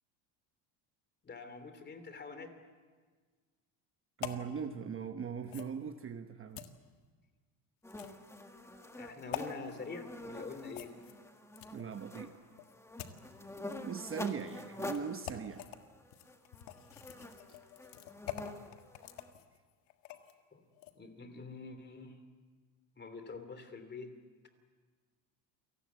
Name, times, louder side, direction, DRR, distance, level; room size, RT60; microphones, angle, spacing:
voice 1, 1.2-2.5 9.0-10.9 20.5-20.6 21.0-22.2 23.0-24.1, left 4 dB, 25° left, 9 dB, 3.0 m, -45 dB
sound 1, 4.2-4.5 5.5-5.7 6.6-6.7 7.9-8.3 9.3-9.5 10.7-11.9 12.6-13.2 14.3-14.4 14.8-15.0 15.3-15.8 16.1-20.4 20.7-20.9, left 13 dB, 80° left, 1.8 m, -45 dB
voice 2, 4.2-6.6 11.7-12.3 13.8-15.7, right 7 dB, 30° right, 7 dB, 1.0 m, -40 dB
sound 2, 7.8-19.3, left 1 dB, 5° left, 1.7 m, -47 dB
28.5 x 19.0 x 8.3 m, 1.5 s
cardioid pair, 130°, 44 cm